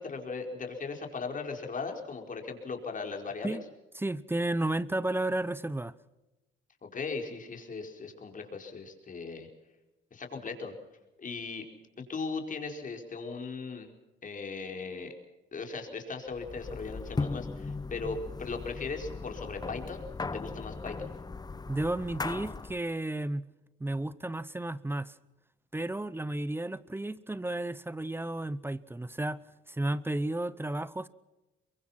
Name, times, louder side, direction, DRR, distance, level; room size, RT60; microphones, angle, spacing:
voice 1, 0.0-3.6 6.8-9.5 10.1-10.7 11.2-11.6 12.0-13.9 14.2-15.1 15.5-21.1, left 4 dB, 40° left, 4.9 m, -38 dB
voice 2, 3.9-5.9 21.7-23.5 23.8-25.1 25.7-29.4 29.7-31.1, right 1 dB, 10° right, 0.8 m, -32 dB
sound 1, 16.3-22.8, left 3 dB, 20° left, 0.8 m, -38 dB
23.5 x 22.5 x 5.9 m
cardioid pair, 90°, 20 cm